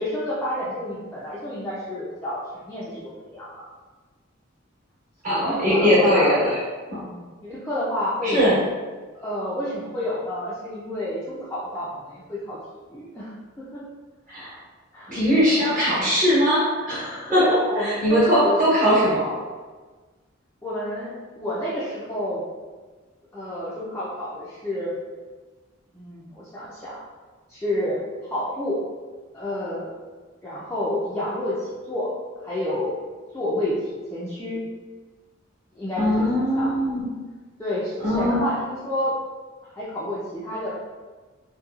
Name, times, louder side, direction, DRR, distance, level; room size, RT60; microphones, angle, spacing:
voice 1, 0.0-3.6 5.3-6.4 7.0-8.6 9.1-12.6 12.9-13.8 14.9-15.2 17.3-19.4 20.6-22.4 23.3-24.9 25.9-27.0 27.5-28.8 29.3-29.9 30.4-32.1 32.4-33.0 33.3-34.6 35.7-36.7 37.6-39.1 39.8-40.7, left 1 dB, 10° left, -9 dB, 0.3 m, -29 dB
voice 2, 5.2-6.5 6.9-7.0 8.2-8.6 14.3-14.5 15.1-17.4 17.7-19.3 36.0-37.1 38.0-38.4, equal, 40° right, -9 dB, 1.1 m, -20 dB
2.9 x 2.2 x 2.3 m, 1.4 s
head